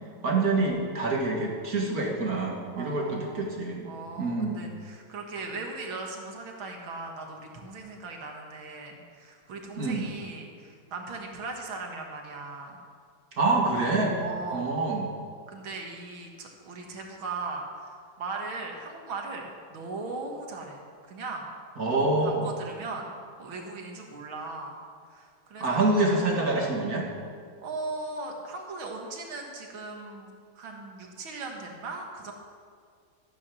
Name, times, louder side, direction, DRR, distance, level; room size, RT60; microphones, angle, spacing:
voice 1, 0.2-3.9 4.2-4.6 9.8-10.1 13.3-14.2 14.5-15.1 21.8-22.5 25.6-27.1, right 2 dB, 50° right, -1 dB, 2.1 m, -26 dB
voice 2, 2.8-12.8 14.2-14.8 15.5-21.6 21.9-24.8 25.1-25.9 27.6-32.3, right 3 dB, 85° right, 1 dB, 2.4 m, -38 dB
14.0 x 9.5 x 6.2 m, 2.1 s
omnidirectional pair, 2.2 m